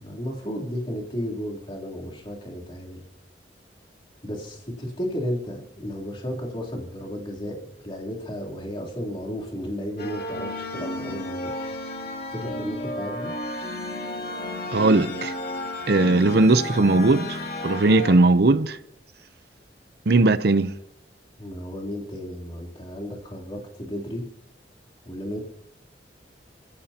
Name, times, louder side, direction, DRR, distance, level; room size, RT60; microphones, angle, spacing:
voice 1, 0.0-3.0 4.2-11.5 12.3-13.3 21.4-24.2 25.0-25.4, equal, 30° left, 3.3 m, -33 dB
sound 1, 10.0-18.2, left 1 dB, 60° left, 2.5 m, -32 dB
voice 2, 14.7-15.3 15.9-17.4 17.6-18.8 20.1-20.7, right 2 dB, 65° right, 0.7 m, -18 dB
27.0 x 16.0 x 2.9 m
head